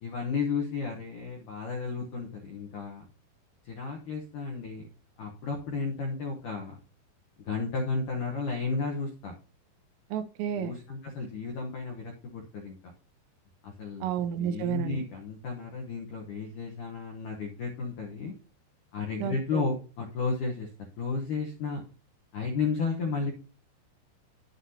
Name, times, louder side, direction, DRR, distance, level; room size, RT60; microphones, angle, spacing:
voice 1, 0.0-3.0 3.6-4.9 5.2-6.8 7.4-9.3 10.6-12.8 13.6-14.1 14.4-18.3 18.9-20.7 21.0-21.8 22.3-23.3, left 4 dB, 75° left, 0 dB, 1.8 m, -33 dB
voice 2, 10.1-10.7 14.0-15.0 19.2-19.7, right 9 dB, 80° right, 10 dB, 2.9 m, -31 dB
9.8 x 9.4 x 2.8 m, 0.36 s
omnidirectional pair, 5.3 m